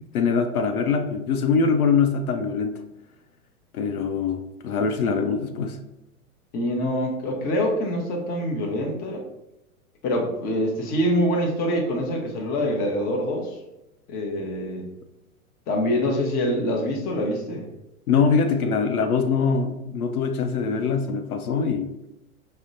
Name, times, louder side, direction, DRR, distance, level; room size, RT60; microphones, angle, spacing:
voice 1, 0.1-2.8 3.7-5.8 18.1-21.9, left 5 dB, 80° left, 6 dB, 0.6 m, -23 dB
voice 2, 6.5-9.2 10.0-13.5 14.1-14.9 15.7-17.7, equal, 20° left, 0 dB, 0.6 m, -25 dB
5.0 x 2.1 x 2.5 m, 0.90 s
figure-of-eight pair, 105°, 44 cm